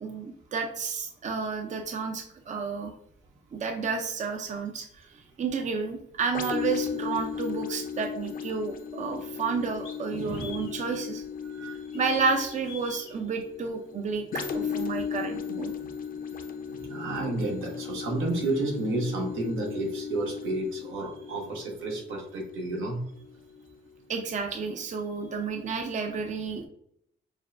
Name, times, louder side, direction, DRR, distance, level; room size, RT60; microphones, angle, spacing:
voice 1, 0.0-2.9 3.5-5.1 5.4-11.2 11.9-15.7 24.1-26.7, right 5 dB, 35° right, 4 dB, 0.6 m, -31 dB
sound 1, 6.3-23.9 24.4-24.5, left 7 dB, 45° left, 0.7 m, -36 dB
sound 2, 9.1-9.2 9.8-10.8 11.9-13.1, left 6 dB, 90° left, 1.6 m, -44 dB
voice 2, 11.4-11.9 16.7-23.0, right 2 dB, 85° right, 0 dB, 1.1 m, -31 dB
6.4 x 2.1 x 2.5 m, 0.69 s
cardioid pair, 90°, 20 cm